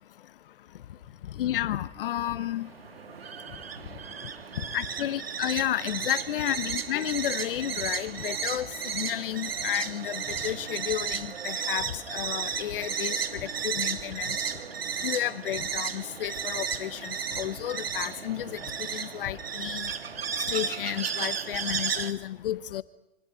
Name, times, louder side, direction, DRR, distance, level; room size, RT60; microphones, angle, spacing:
voice 1, 1.4-2.7 4.7-14.4 15.0-19.9 20.5-22.8, left 12 dB, 65° left, 16 dB, 1.1 m, -32 dB
sound 1, 2.4-22.1, right 7 dB, 85° right, 1.6 m, -34 dB
26.0 x 25.0 x 5.2 m, 0.96 s
hypercardioid pair, 110°, 29 cm